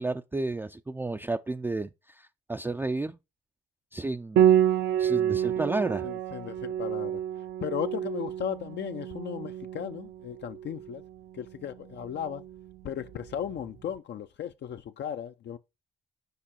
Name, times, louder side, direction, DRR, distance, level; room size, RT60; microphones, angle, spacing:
voice 1, 0.0-3.2 3.9-4.5 5.0-6.1, right 2 dB, 10° right, 0.4 m, -32 dB
Piano, 4.4-13.7, right 10 dB, 70° right, 0.6 m, -29 dB
voice 2, 6.0-7.2 7.6-11.0 11.3-12.4 12.8-15.6, left 9 dB, 60° left, 0.6 m, -36 dB
6.8 x 4.9 x 4.3 m
cardioid pair, 90°, 20 cm